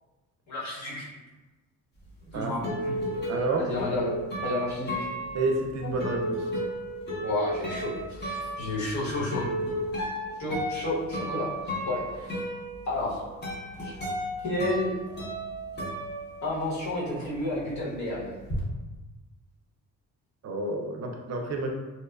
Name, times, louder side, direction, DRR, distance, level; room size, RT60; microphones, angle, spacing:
voice 1, 0.5-1.1 2.3-2.9 3.6-4.1 4.4-5.1 7.2-9.5 10.4-11.5 11.8-12.3 12.8-13.3 13.8-13.9 14.4-14.9 16.4-18.4, left 2 dB, 60° left, -7 dB, 1.1 m, -31 dB
sound 1, 2.1-16.9 17.1-18.6, equal, 30° left, 0.7 m, -34 dB
voice 2, 3.3-3.7 5.3-6.4 20.4-21.7, right 2 dB, 55° right, 2 dB, 0.4 m, -29 dB
2.7 x 2.2 x 2.2 m, 1.2 s
cardioid pair, 120°, 33 cm